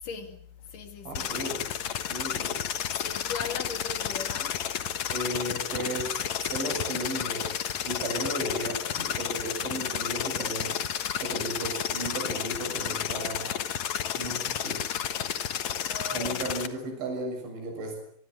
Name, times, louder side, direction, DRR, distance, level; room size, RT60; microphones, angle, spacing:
voice 1, 0.0-1.3 2.2-2.3 3.0-4.7 15.7-16.4, left 5 dB, 50° left, 3.7 m, -39 dB
sound 1, 1.1-16.7, left 9 dB, 90° left, 1.5 m, -31 dB
voice 2, 1.1-1.6 2.1-2.6 5.1-7.5 7.9-10.8 11.2-13.5 14.1-14.8 16.1-18.0, right 1 dB, 70° right, 9.3 m, -35 dB
24.5 x 23.5 x 7.9 m
omnidirectional pair, 5.6 m